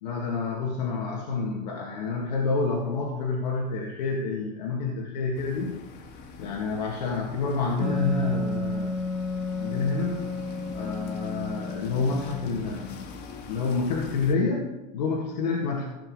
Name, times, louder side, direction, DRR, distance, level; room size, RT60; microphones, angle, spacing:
voice 1, 0.0-5.8 6.4-9.0 9.6-10.3 10.7-13.0 13.5-15.8, left 4 dB, 85° left, -1 dB, 2.1 m, -28 dB
sound 1, 5.3-14.3, left 4 dB, 50° left, 2.0 m, -44 dB
Wind instrument woodwind instrument, 7.8-13.2, left 2 dB, ahead, 1.0 m, -32 dB
15.5 x 6.9 x 4.9 m, 1.0 s
supercardioid pair, 110°, 21 cm